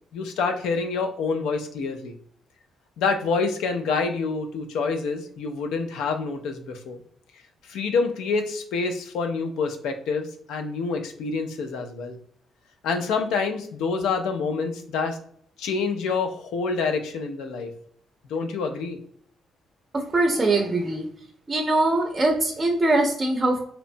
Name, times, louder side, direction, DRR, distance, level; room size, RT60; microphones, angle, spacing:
voice 1, 0.1-2.1 3.0-7.0 7.7-12.2 12.8-15.2 15.6-17.7 18.3-19.0, left 4 dB, 85° left, 6 dB, 0.4 m, -27 dB
voice 2, 19.9-21.1 21.5-23.6, right 2 dB, 25° right, 2 dB, 0.4 m, -22 dB
2.8 x 2.1 x 2.5 m, 0.62 s
cardioid pair, 90°, 0 cm